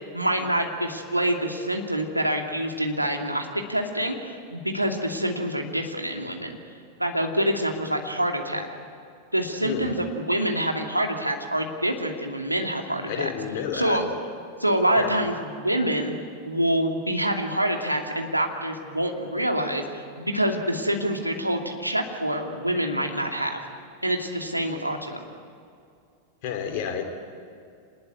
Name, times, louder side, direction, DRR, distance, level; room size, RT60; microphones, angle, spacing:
voice 1, 0.1-6.6 7.0-8.7 9.3-13.3 13.7-14.1 14.6-16.1 16.4-23.6 24.0-25.3, right 1 dB, 85° right, 2 dB, 2.6 m, -26 dB
voice 2, 9.6-9.9 13.1-14.0 15.0-15.1 26.4-27.1, left 8 dB, 45° left, 3 dB, 3.6 m, -30 dB
26.5 x 20.0 x 9.7 m, 2.4 s
figure-of-eight pair, 90°, 0 cm